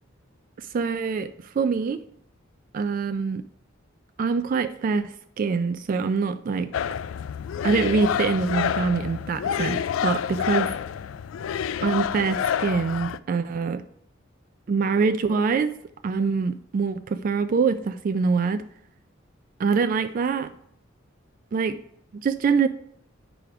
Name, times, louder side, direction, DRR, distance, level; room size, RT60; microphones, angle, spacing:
voice 1, 0.6-2.0 2.7-3.4 4.2-6.7 7.6-10.7 11.8-13.8 14.7-15.8 16.0-18.6 19.6-20.5 21.5-21.8 22.1-22.7, right 5 dB, 45° right, 0.3 m, -24 dB
sound 1, 6.7-13.2, left 8 dB, 85° left, 0.3 m, -28 dB
9.2 x 5.0 x 4.8 m
head